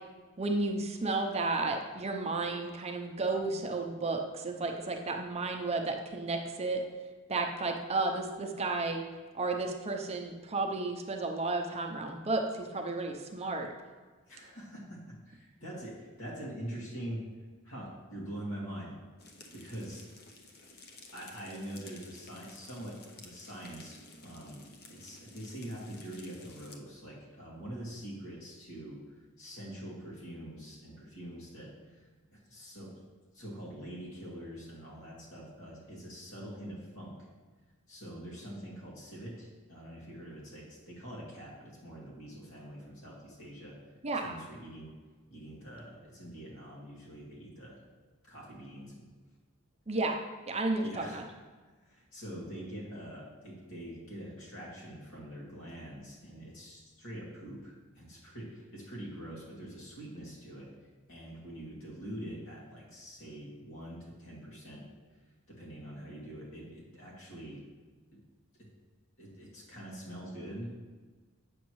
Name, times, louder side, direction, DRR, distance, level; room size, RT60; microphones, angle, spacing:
voice 1, 0.4-6.8 7.3-9.0 9.3-13.7 44.0-44.4 49.9-50.2 50.5-51.2, right 3 dB, 30° right, 3 dB, 0.6 m, -32 dB
voice 2, 14.3-17.2 17.6-18.9 19.5-20.0 21.1-24.6 24.9-29.0 29.4-33.0 33.3-37.2 37.9-43.8 44.2-44.9 45.3-47.8 48.2-49.0 50.8-51.2 51.8-60.7 61.1-64.8 65.5-67.6 69.2-70.7, right 1 dB, 80° left, -4 dB, 2.3 m, -44 dB
sound 1, 19.2-26.8, left 2 dB, 50° left, 0.7 m, -53 dB
8.2 x 6.2 x 3.1 m, 1.4 s
head